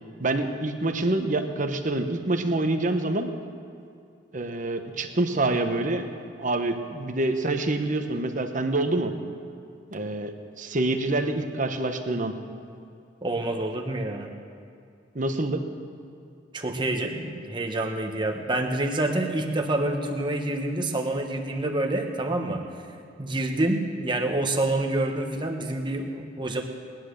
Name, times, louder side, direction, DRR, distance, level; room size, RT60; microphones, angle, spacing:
voice 1, 0.2-3.3 4.3-6.0 6.4-9.1 9.9-12.3 15.1-15.7, right 2 dB, 45° right, 6 dB, 1.0 m, -26 dB
voice 2, 13.2-14.3 16.5-22.6 23.2-26.6, right 2 dB, 25° right, 3 dB, 1.3 m, -27 dB
19.0 x 10.5 x 6.5 m, 2.5 s
head